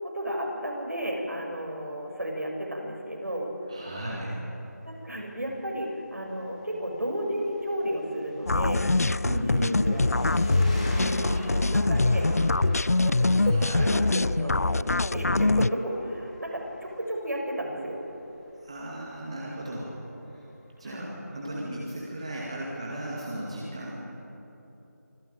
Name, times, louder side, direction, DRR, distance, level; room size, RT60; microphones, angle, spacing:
voice 1, 0.0-3.5 4.8-8.9 9.2-10.1 11.5-12.3 12.5-12.6 13.0-18.0 20.8-21.1, equal, 70° right, -1 dB, 6.7 m, -33 dB
Engine, 3.6-23.2, equal, 20° left, 3.9 m, -41 dB
voice 2, 3.7-4.3 9.2-9.8 11.2-11.5 13.4-13.9 18.6-19.9 20.8-24.0, right 1 dB, 20° right, -5 dB, 2.2 m, -35 dB
sound 1, 8.5-15.7, left 2 dB, 60° left, 0.4 m, -24 dB
24.5 x 14.5 x 9.3 m, 3.0 s
figure-of-eight pair, 175°, 9 cm